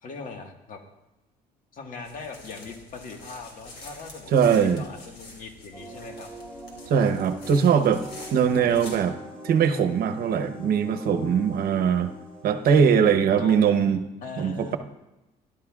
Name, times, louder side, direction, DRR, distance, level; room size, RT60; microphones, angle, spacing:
voice 1, 0.0-0.8 1.7-6.3 8.3-8.6 13.3-14.8, left 4 dB, 55° left, 3 dB, 1.6 m, -40 dB
sound 1, 2.0-9.0, left 2 dB, 80° left, 2.8 m, -46 dB
voice 2, 4.3-4.8 6.9-8.0 8.3-9.2 9.4-12.1 12.4-14.0 14.4-14.8, right 7 dB, 65° right, 9 dB, 0.9 m, -21 dB
sound 2, 5.7-14.1, equal, 5° left, 4.7 m, -42 dB
17.5 x 11.5 x 2.4 m, 0.96 s
cardioid pair, 110°, 17 cm